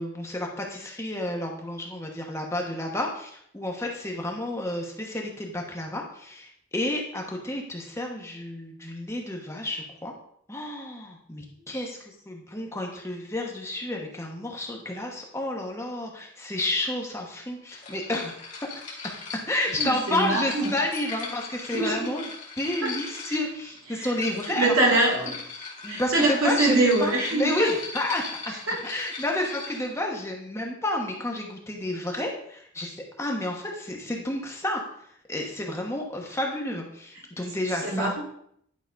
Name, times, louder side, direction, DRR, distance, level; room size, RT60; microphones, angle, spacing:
voice 1, 0.0-10.1 10.5-18.5 19.5-22.2 22.6-24.9 25.8-28.5 28.8-34.8 35.3-38.1, left 1 dB, 15° left, 0 dB, 1.1 m, -30 dB
sound 1, 17.7-29.9, left 4 dB, 35° left, 2.2 m, -38 dB
voice 2, 19.8-20.7 21.7-22.2 22.8-22.9 23.3-23.4 23.9-24.1 24.4-25.4 25.9-27.7 28.7-28.8 37.8-38.2, right 2 dB, 80° right, -2 dB, 2.6 m, -24 dB
10.5 x 4.0 x 5.1 m, 0.68 s
head